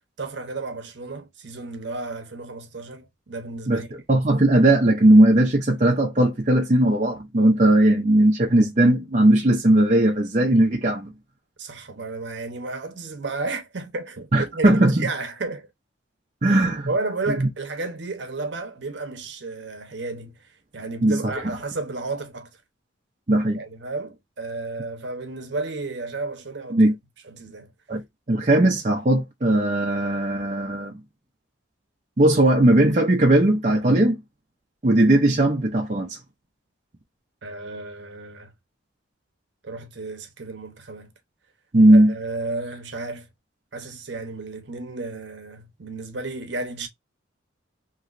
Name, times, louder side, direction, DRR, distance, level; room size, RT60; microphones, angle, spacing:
voice 1, 0.2-3.9 11.6-15.7 16.9-22.5 23.5-26.9 27.2-27.7 37.4-38.5 39.6-41.1 41.9-43.3 43.7-46.9, right 3 dB, 60° right, 0.9 m, -32 dB
voice 2, 3.7-11.1 14.3-15.1 16.4-16.9 17.4-17.5 21.0-21.3 23.3-23.6 26.7-26.9 27.9-28.0 28.3-30.9 32.2-34.2 34.8-36.2 41.7-42.1, right 1 dB, 35° right, 0.6 m, -18 dB
3.0 x 2.9 x 2.4 m
head